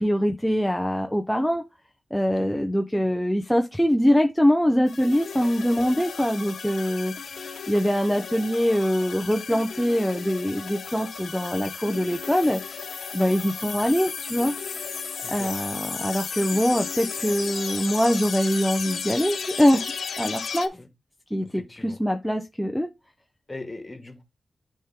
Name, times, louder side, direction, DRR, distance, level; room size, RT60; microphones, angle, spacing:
voice 1, 0.0-1.6 2.1-14.5 15.3-19.9 20.2-20.7 21.3-22.9, equal, ahead, 0.8 m, -23 dB
voice 2, 2.4-2.7 15.2-15.5 20.8-20.9 21.4-22.0 23.5-24.2, left 2 dB, 25° left, 2.1 m, -40 dB
sound 1, 4.9-20.7, left 6 dB, 80° left, 1.0 m, -34 dB
9.9 x 4.4 x 3.7 m
wide cardioid pair, 90°, 0 cm